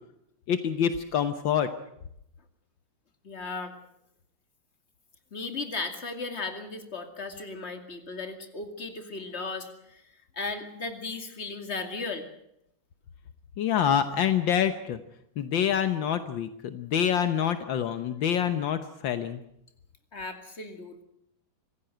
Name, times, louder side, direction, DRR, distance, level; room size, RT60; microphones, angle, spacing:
voice 1, 0.5-1.7 13.6-15.0 15.4-19.4, left 8 dB, 75° left, 10 dB, 1.7 m, -26 dB
voice 2, 3.2-3.8 5.3-12.3 20.1-21.0, left 3 dB, 35° left, 6 dB, 2.6 m, -36 dB
25.5 x 16.0 x 7.9 m, 0.79 s
omnidirectional pair, 2.2 m